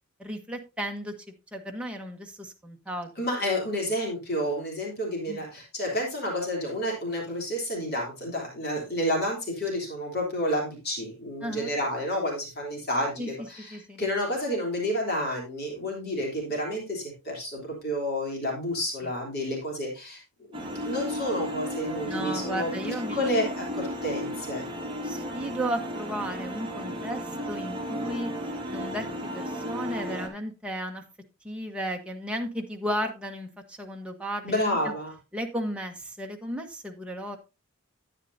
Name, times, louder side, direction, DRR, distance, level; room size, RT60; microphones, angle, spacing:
voice 1, 0.2-1.1 1.5-3.1 5.3-5.4 11.4-11.7 13.2-13.3 13.7-14.0 19.0-19.1 22.1-23.5 25.0-27.2 27.5-28.3 28.7-31.0 31.4-34.9 35.3-37.4, equal, 5° right, 1 dB, 1.1 m, -34 dB
voice 2, 3.2-20.2 20.8-24.6 34.4-35.1, equal, 50° left, -1 dB, 3.3 m, -30 dB
sound 1, 20.5-30.3, equal, 25° right, 1.9 m, -34 dB
11.0 x 9.1 x 2.7 m, 0.27 s
head